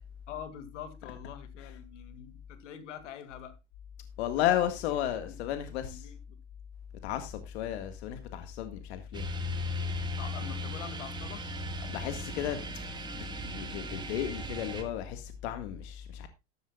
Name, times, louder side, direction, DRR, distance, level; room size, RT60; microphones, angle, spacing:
voice 1, 0.3-3.5 4.9-5.3 5.8-6.4 10.1-11.5, left 9 dB, 80° left, 2.4 m, -45 dB
voice 2, 4.2-6.1 7.0-9.3 11.9-12.6 13.4-16.3, left 11 dB, 60° left, 1.8 m, -33 dB
sound 1, 9.1-14.8, left 1 dB, 10° right, 1.7 m, -37 dB
13.5 x 12.5 x 2.4 m
supercardioid pair, 140°, 36 cm